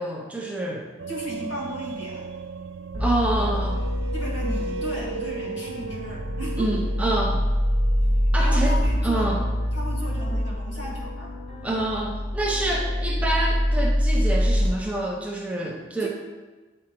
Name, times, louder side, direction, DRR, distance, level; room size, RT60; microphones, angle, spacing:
voice 1, 0.0-0.9 3.0-3.8 6.6-7.4 8.3-8.8 9.0-9.4 11.6-16.1, right 1 dB, 5° right, -2 dB, 0.7 m, -27 dB
sound 1, 1.0-10.3, right 4 dB, 80° right, 0.3 m, -37 dB
voice 2, 1.1-2.3 4.1-6.8 8.4-9.4 9.7-11.3 16.0-16.1, equal, 70° left, -4 dB, 1.8 m, -35 dB
sound 2, 2.9-14.7, equal, 25° left, 2.0 m, -25 dB
8.5 x 4.8 x 3.0 m, 1.3 s
head